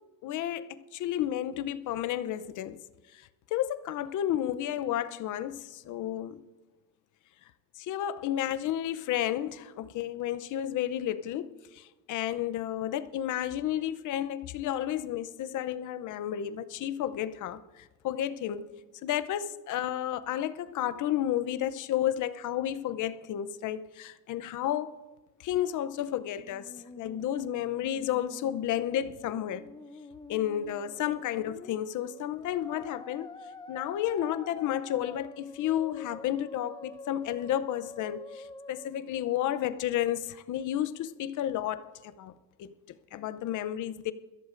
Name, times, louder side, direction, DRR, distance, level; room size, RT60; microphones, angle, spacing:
voice 1, 0.2-2.8 3.1-6.4 7.8-18.7 19.0-25.0 25.4-29.7 30.3-33.3 33.7-42.3 42.6-44.1, left 11 dB, 80° left, 0.7 m, -32 dB
Musical instrument, 26.3-39.3, left 2 dB, 15° left, 0.8 m, -47 dB
21.5 x 15.0 x 2.6 m
cardioid pair, 90°, 30 cm